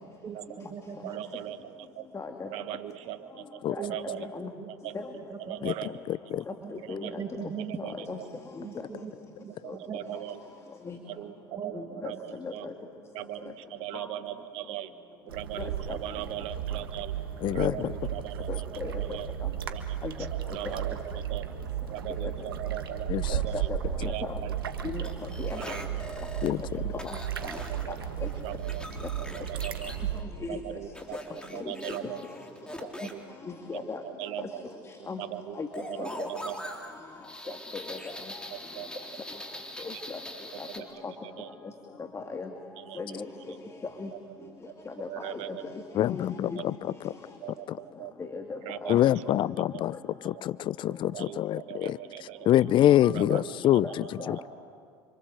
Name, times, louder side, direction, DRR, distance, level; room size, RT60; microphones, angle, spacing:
voice 1, 0.2-1.2 3.8-4.7 5.1-5.6 6.3-7.8 8.6-10.2 11.5-12.2, right 6 dB, 30° right, 6 dB, 2.3 m, -41 dB
voice 2, 1.0-2.1 2.4-4.3 4.6-5.0 5.4-5.9 6.8-7.2 7.7-8.3 9.6-10.4 11.0-12.7 13.1-14.9 15.3-17.2 17.4-19.3 19.6-21.5 21.9-23.7 24.0-24.9 25.5-25.9 27.4-27.9 28.4-28.8 29.2-29.9 30.5-32.3 32.7-33.2 33.7-34.6 35.2-36.9 37.4-37.6 38.5-38.9 39.8-40.0 40.5-40.9 42.8-43.2 44.1-45.6 46.6-46.7 47.4-48.1 48.5-49.7 50.3-50.4 51.1-52.5 53.1-54.5, right 13 dB, 60° right, 11 dB, 1.6 m, -40 dB
voice 3, 2.1-2.5 3.7-3.8 4.3-4.5 4.9-5.1 6.5-6.6 6.9-7.1 8.1-8.2 8.6-8.7 10.9-11.0 11.7-12.1 12.4-12.7 13.9-14.1 15.6-16.0 17.7-17.8 18.5-19.2 20.0-20.1 20.6-20.8 22.2-22.3 23.3-23.8 24.0-24.4 24.8-25.1 25.4-25.6 27.0-27.2 28.2-28.3 30.4-30.6 31.5-31.7 33.5-34.0 34.4-34.5 35.1-35.2 35.6-35.7 36.0-36.3 37.7-38.0 39.8-40.2 40.6-40.7 42.1-42.5 43.0-43.3 44.0-44.1 44.9-45.4 46.1-46.2 46.5-46.6 48.2-49.0 53.8-53.9 54.2-54.5, left 4 dB, 25° left, 5 dB, 2.3 m, -37 dB
sound 1, 15.3-30.2, right 10 dB, 90° right, 1.6 m, -34 dB
voice 4, 17.4-17.9 23.1-23.4 26.4-26.6 45.9-47.1 47.7-47.8 48.9-49.9 50.2-52.0 52.5-54.5, left 12 dB, 45° left, 21 dB, 0.6 m, -25 dB
sound 2, 25.0-26.5 27.0-27.8 28.2-30.0 30.9-33.1 35.7-40.8, equal, 10° left, 3.7 m, -42 dB
28.5 x 25.5 x 7.7 m, 2.1 s
hypercardioid pair, 80°, 12 cm